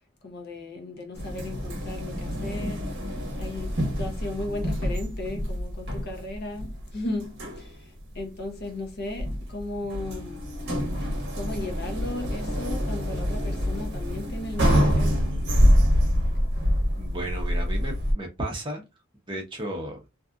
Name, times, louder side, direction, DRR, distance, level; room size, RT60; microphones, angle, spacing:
voice 1, 0.2-3.0 3.4-10.5 11.3-15.4, left 2 dB, 45° left, 0.8 m, -36 dB
sound 1, 1.1-18.1, equal, 50° right, 0.9 m, -26 dB
voice 2, 17.0-18.8 19.3-20.0, right 1 dB, 20° right, 0.7 m, -33 dB
2.7 x 2.4 x 2.3 m
head